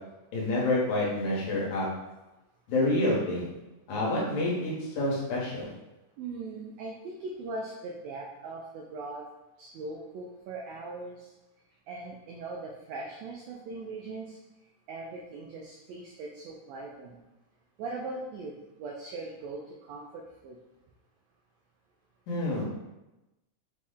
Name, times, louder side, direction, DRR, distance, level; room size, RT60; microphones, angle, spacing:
voice 1, 0.3-1.9 2.7-3.4 3.9-5.7 22.3-22.6, left 1 dB, 75° left, -5 dB, 2.4 m, -28 dB
voice 2, 6.2-9.2 9.6-11.3 11.9-14.4 14.9-17.2 17.8-20.6, right 3 dB, 90° right, -1 dB, 1.5 m, -40 dB
5.9 x 2.1 x 3.5 m, 1.0 s
omnidirectional pair, 3.6 m